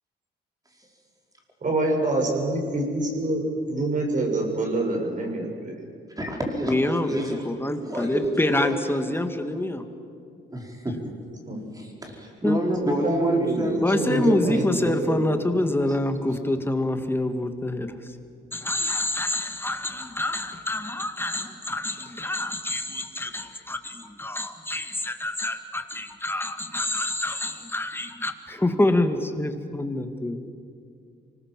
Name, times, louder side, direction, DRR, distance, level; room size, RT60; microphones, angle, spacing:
voice 1, 1.6-5.9 11.5-11.6 12.8-15.9, right 2 dB, 40° right, 1 dB, 6.5 m, -26 dB
voice 2, 6.2-7.5 7.8-8.7 10.5-11.1 11.7-14.9, right 1 dB, 20° right, 1 dB, 4.9 m, -28 dB
voice 3, 6.7-7.2 7.4-9.8 10.9-11.0 12.4-12.6 13.8-18.1 18.5-30.5, left 1 dB, 10° left, 7 dB, 2.1 m, -26 dB
25.0 x 19.5 x 7.7 m, 2.4 s
cardioid pair, 90°, 20 cm